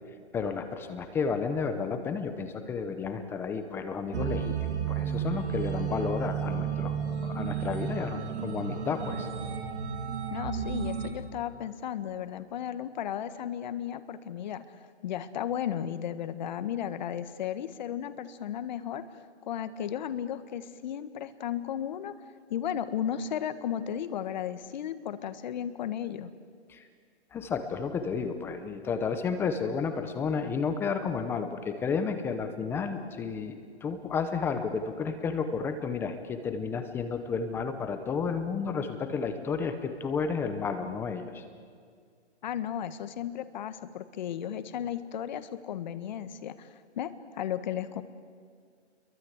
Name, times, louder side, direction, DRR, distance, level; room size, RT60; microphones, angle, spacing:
voice 1, 0.3-9.3 26.7-26.8 27.3-41.4, left 5 dB, 5° left, 8 dB, 0.8 m, -32 dB
sound 1, 4.1-11.1, right 7 dB, 70° right, 4.6 m, -32 dB
voice 2, 10.3-14.6 15.0-19.0 19.5-22.1 22.5-26.3 42.4-47.1 47.4-48.0, left 10 dB, 40° left, 11 dB, 1.6 m, -34 dB
29.5 x 23.0 x 8.2 m, 2.1 s
hypercardioid pair, 155°, 35 cm